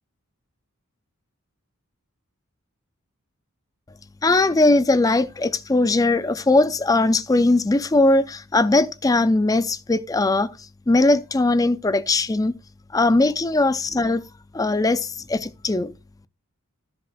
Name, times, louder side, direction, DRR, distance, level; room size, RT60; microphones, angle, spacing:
voice 1, 4.2-10.5 10.9-12.5 12.9-14.2 14.5-15.9, left 2 dB, 15° left, 0.4 m, -19 dB
13.5 x 7.6 x 2.2 m
head